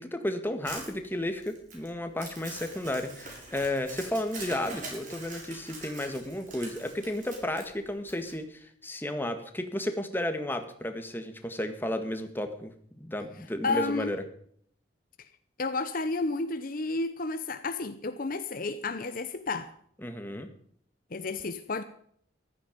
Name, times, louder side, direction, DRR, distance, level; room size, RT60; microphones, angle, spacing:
voice 1, 0.0-12.7 13.0-14.2 20.0-20.5, left 1 dB, 10° left, 1.7 m, -33 dB
Crumpling crinkling, 0.6-8.3, right 3 dB, 45° right, 7.0 m, -44 dB
voice 2, 13.6-14.1 15.2-15.3 15.6-19.7 21.1-21.8, left 3 dB, 45° left, 0.8 m, -31 dB
15.0 x 13.0 x 5.2 m
head